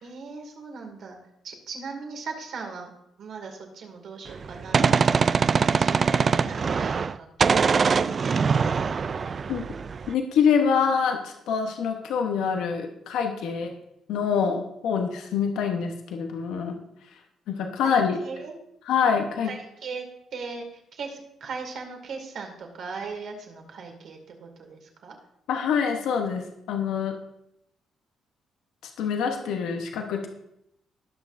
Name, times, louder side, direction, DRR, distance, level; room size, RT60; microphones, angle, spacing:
voice 1, 0.0-1.2 1.4-2.9 3.2-7.3 7.6-8.6 17.8-18.6 19.4-20.1 20.3-25.2 29.4-29.6, right 4 dB, 65° right, 2 dB, 2.4 m, -39 dB
Gunshot gunfire, 4.3-7.2 7.4-10.1, right 5 dB, 45° right, 0.3 m, -23 dB
voice 2, 10.1-13.7 14.1-16.8 17.5-18.2 18.9-19.5 25.5-27.2 29.0-30.3, left 6 dB, 85° left, 3 dB, 1.0 m, -25 dB
18.5 x 6.3 x 2.6 m, 0.78 s
cardioid pair, 90°, 0 cm